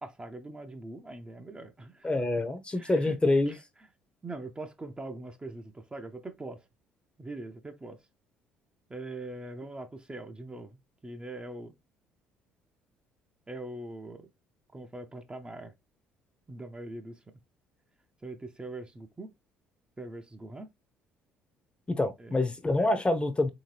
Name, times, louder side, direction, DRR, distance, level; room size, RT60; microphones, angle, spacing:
voice 1, 0.0-2.1 2.8-3.6 4.2-6.6 7.2-8.0 8.9-10.8 11.0-11.7 13.5-14.3 14.7-15.7 16.5-17.3 18.2-19.3 20.0-20.7 22.2-22.4, right 2 dB, 20° right, 0.7 m, -42 dB
voice 2, 2.0-3.5 21.9-23.5, left 2 dB, 20° left, 0.8 m, -26 dB
3.5 x 2.8 x 3.2 m
hypercardioid pair, 60°, 5 cm